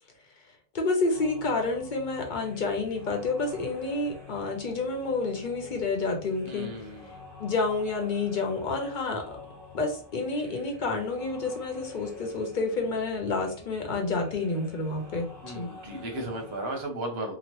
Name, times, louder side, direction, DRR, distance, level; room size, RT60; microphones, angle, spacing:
voice 1, 0.7-6.7 7.4-9.4 9.7-15.7, left 3 dB, 55° left, 3 dB, 0.7 m, -29 dB
sound 1, 1.1-16.9, left 3 dB, 35° right, 1.2 m, -48 dB
voice 2, 6.5-7.1 15.4-17.4, right 1 dB, 80° right, 3 dB, 1.1 m, -35 dB
2.9 x 2.1 x 2.9 m, 0.41 s
omnidirectional pair, 1.0 m